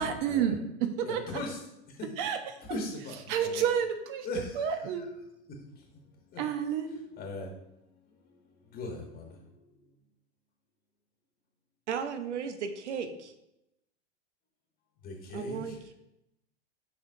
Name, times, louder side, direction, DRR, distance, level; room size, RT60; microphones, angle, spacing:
voice 1, 0.0-1.2 2.2-2.4 3.3-4.3 4.6-5.1 6.4-7.0, right 8 dB, 45° right, 7 dB, 0.9 m, -29 dB
voice 2, 1.0-1.6 1.9-2.1 2.6-3.6 4.2-5.1 5.7-5.8 6.3-6.4 7.2-7.5 8.1-9.5 15.0-15.8, left 2 dB, 25° left, 0 dB, 1.3 m, -40 dB
voice 3, 11.9-13.3 15.3-15.9, right 6 dB, 85° right, 8 dB, 0.8 m, -35 dB
6.8 x 5.3 x 2.7 m, 0.87 s
hypercardioid pair, 115°, 34 cm